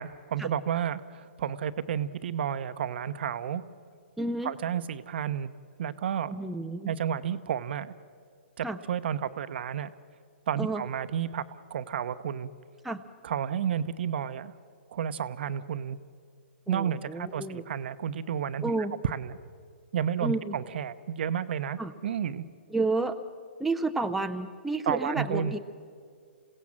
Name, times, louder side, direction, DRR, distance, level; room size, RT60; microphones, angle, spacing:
voice 1, 0.0-3.6 4.4-5.5 5.8-6.3 6.9-7.9 8.6-9.9 10.5-11.4 11.7-12.5 13.2-14.5 14.9-16.0 16.7-19.4 19.9-22.4 24.9-25.6, right 9 dB, 60° right, 12 dB, 0.9 m, -31 dB
voice 2, 4.2-4.5 6.3-6.9 8.6-8.8 10.6-10.8 12.8-13.0 16.7-17.6 18.6-19.0 20.2-20.5 21.8-21.9 22.7-23.2 23.6-25.6, right 2 dB, 5° right, 5 dB, 0.7 m, -30 dB
27.5 x 17.0 x 7.4 m, 2.1 s
hypercardioid pair, 135°, 7 cm